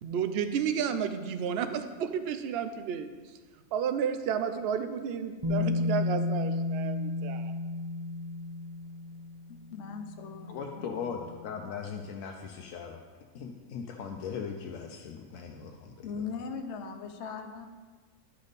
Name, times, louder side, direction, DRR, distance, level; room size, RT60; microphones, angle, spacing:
voice 1, 0.0-3.1 3.7-7.5, right 7 dB, 60° right, 9 dB, 0.7 m, -32 dB
Bass guitar, 5.4-11.5, left 3 dB, 45° right, 0.3 m, -33 dB
voice 2, 9.5-10.9 16.0-17.7, left 5 dB, 65° left, 5 dB, 1.0 m, -39 dB
voice 3, 10.5-13.0 13.3-16.1, left 6 dB, 90° left, 2 dB, 1.0 m, -39 dB
11.0 x 5.2 x 4.1 m, 1.4 s
omnidirectional pair, 1.4 m